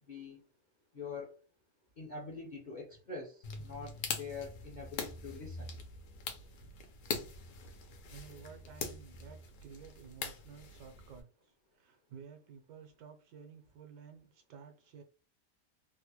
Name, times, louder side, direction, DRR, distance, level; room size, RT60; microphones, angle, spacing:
voice 1, 0.1-0.4 0.9-1.3 2.0-5.7, left 4 dB, 50° left, -2 dB, 0.5 m, -44 dB
sound 1, 3.4-11.2, left 5 dB, 85° left, 1.3 m, -43 dB
voice 2, 8.1-15.0, right 7 dB, 85° right, 5 dB, 1.3 m, -53 dB
3.4 x 2.2 x 2.9 m, 0.33 s
omnidirectional pair, 1.8 m